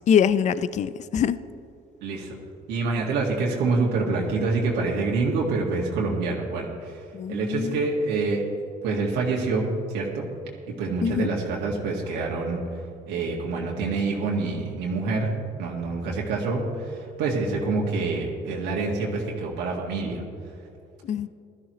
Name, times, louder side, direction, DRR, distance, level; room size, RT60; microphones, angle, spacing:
voice 1, 0.1-1.4 7.1-7.9 11.0-11.3 21.0-21.3, left 8 dB, 45° left, 15 dB, 0.5 m, -23 dB
voice 2, 2.0-2.4 2.7-7.0 7.3-8.4 8.8-10.3 10.8-12.6 13.1-15.3 15.6-20.2, right 3 dB, 90° right, -3 dB, 1.8 m, -26 dB
16.5 x 13.0 x 3.1 m, 2.6 s
cardioid pair, 110°, 17 cm